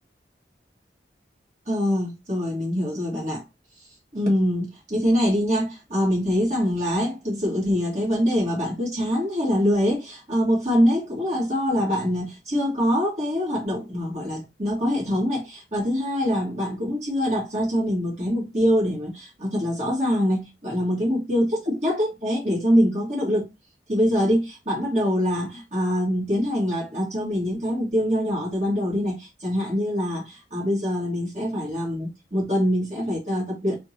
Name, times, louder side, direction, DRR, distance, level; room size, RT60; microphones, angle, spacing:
voice 1, 1.7-3.4 4.1-23.5 23.9-33.8, equal, 40° right, 1.8 m, -24 dB
3.5 x 3.0 x 4.2 m
head